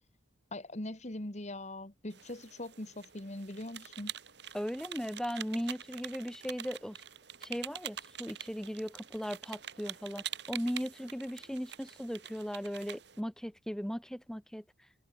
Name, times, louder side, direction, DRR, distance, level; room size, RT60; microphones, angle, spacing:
voice 1, 0.5-4.1, left 1 dB, 40° left, 2.1 m, -41 dB
sound 1, 2.1-13.2, right 10 dB, 60° right, 2.4 m, -46 dB
voice 2, 4.5-7.0 7.4-14.6, equal, 5° left, 1.5 m, -37 dB
head